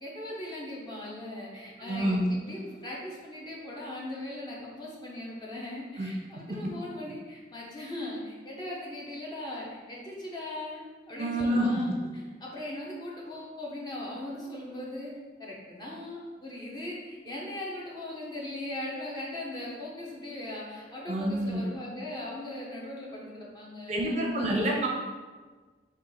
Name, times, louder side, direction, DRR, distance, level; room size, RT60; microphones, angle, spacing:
voice 1, 0.0-15.1 15.4-24.9, left 1 dB, 25° left, -4 dB, 0.7 m, -39 dB
voice 2, 1.8-2.3 6.0-6.1 11.2-11.7 21.1-21.6 23.9-24.9, right 1 dB, 40° right, -1 dB, 0.5 m, -27 dB
4.1 x 2.4 x 3.9 m, 1.4 s
head